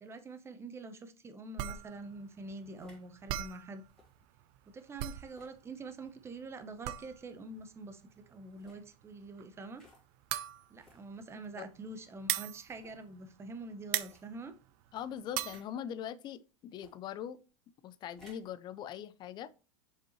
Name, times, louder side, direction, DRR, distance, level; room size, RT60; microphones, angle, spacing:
voice 1, 0.0-3.8 4.7-9.8 10.7-14.5, right 3 dB, 15° right, 0.9 m, -46 dB
sound 1, 1.6-1.8 2.7-3.1 3.9-4.1 5.2-5.6 6.8-7.1 8.5-8.8 9.7-10.0 10.8-11.1 11.8-11.9 12.7-13.0 14.0-14.3 15.4-15.7 16.7-17.0 18.0-18.5, left 1 dB, 5° left, 3.0 m, -61 dB
sound 2, 1.6-13.6 13.8-15.6, right 14 dB, 45° right, 0.5 m, -39 dB
voice 2, 14.9-17.4 17.8-19.5, left 9 dB, 25° left, 0.4 m, -41 dB
7.3 x 5.3 x 3.1 m
supercardioid pair, 145°, 18 cm